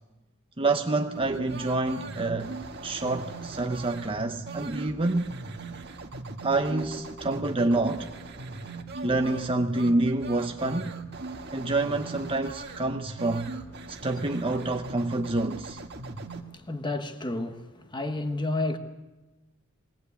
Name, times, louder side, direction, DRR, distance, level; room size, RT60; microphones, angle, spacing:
voice 1, 0.6-2.6 2.8-5.4 6.4-8.1 9.0-10.9 11.5-13.6 13.9-15.8, right 2 dB, 25° right, 0.8 m, -27 dB
sound 1, 1.1-16.4, right 3 dB, 50° right, 1.5 m, -39 dB
sound 2, 6.6-8.2 8.5-8.6, left 1 dB, 10° right, 1.5 m, -46 dB
voice 2, 16.0-18.8, left 2 dB, 20° left, 1.2 m, -32 dB
22.0 x 18.5 x 8.4 m
head